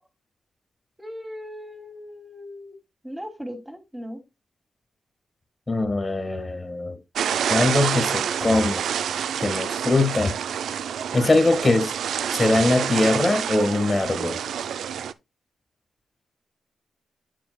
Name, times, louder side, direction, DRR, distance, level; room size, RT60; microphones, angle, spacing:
voice 1, 1.0-2.8 3.0-4.2 11.6-11.8, equal, 10° right, 2.8 m, -37 dB
voice 2, 5.7-7.0 7.5-8.9 9.4-10.4 11.1-11.9 12.3-14.4, left 2 dB, 25° left, 1.9 m, -22 dB
sound 1, 7.1-15.1, right 8 dB, 80° right, 0.4 m, -27 dB
8.9 x 7.5 x 2.3 m
cardioid pair, 55°, 0 cm